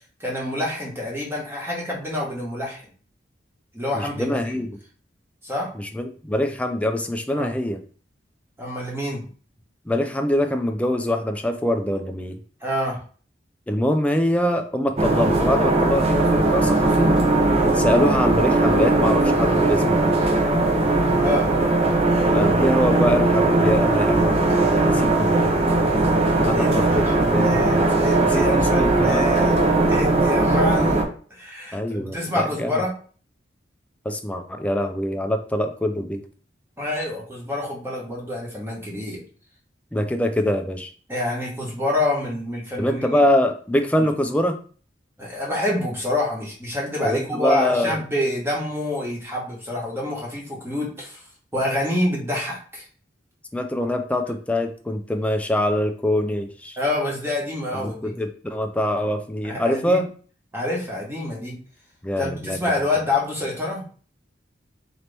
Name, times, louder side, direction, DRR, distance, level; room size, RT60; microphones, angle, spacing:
voice 1, 0.2-2.9 3.7-4.4 5.4-5.7 7.3-7.5 8.6-9.3 12.6-13.0 21.2-21.5 26.5-29.6 29.9-31.0 31.3-32.9 36.8-39.2 41.1-43.2 44.0-44.1 45.2-51.2 51.5-52.8 56.8-58.1 59.4-60.0 60.5-61.6 62.2-63.8, left 1 dB, 15° right, -3 dB, 1.2 m, -27 dB
voice 2, 3.9-4.7 5.7-7.8 9.9-12.4 13.7-17.1 17.7-20.1 22.3-25.7 26.4-27.9 28.2-29.3 31.7-32.7 34.1-36.2 39.9-40.9 42.8-44.5 47.0-48.0 53.5-56.8 57.7-60.1 62.0-62.6, left 1 dB, 5° left, 5 dB, 0.4 m, -24 dB
sound 1, 15.0-31.0, right 2 dB, 35° right, 0.7 m, -19 dB
3.9 x 3.0 x 3.3 m, 0.42 s
head